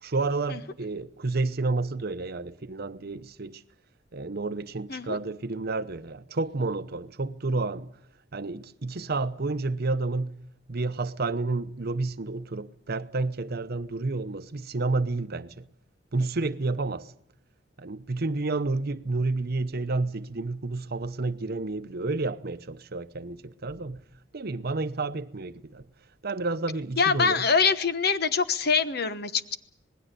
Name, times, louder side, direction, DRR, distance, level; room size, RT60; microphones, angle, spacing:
voice 1, 0.0-3.6 4.1-7.9 8.3-10.4 10.7-15.7 16.1-17.1 17.8-24.0 24.3-25.8 26.2-27.4, right 3 dB, 55° right, 0.8 m, -30 dB
voice 2, 27.0-29.6, left 5 dB, 55° left, 1.2 m, -24 dB
26.5 x 20.0 x 6.8 m
head